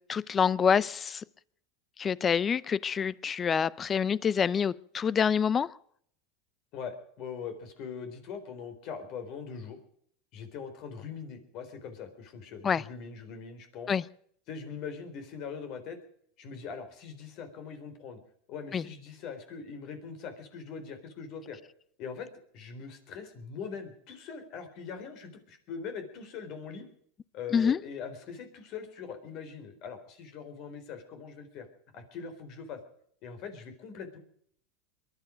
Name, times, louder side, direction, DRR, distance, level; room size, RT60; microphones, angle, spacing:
voice 1, 0.1-1.2 2.0-5.7 12.6-12.8 13.9-14.0 18.7-18.8 27.5-27.8, left 7 dB, 25° left, 22 dB, 0.6 m, -26 dB
voice 2, 6.7-9.8 10.3-14.0 14.5-16.0 16.4-18.2 18.5-21.6 22.0-22.3 22.5-26.9 27.3-31.7 31.9-32.8 33.2-34.2, left 6 dB, 55° left, 8 dB, 3.9 m, -42 dB
22.5 x 11.5 x 5.1 m, 0.64 s
supercardioid pair, 110°, 0 cm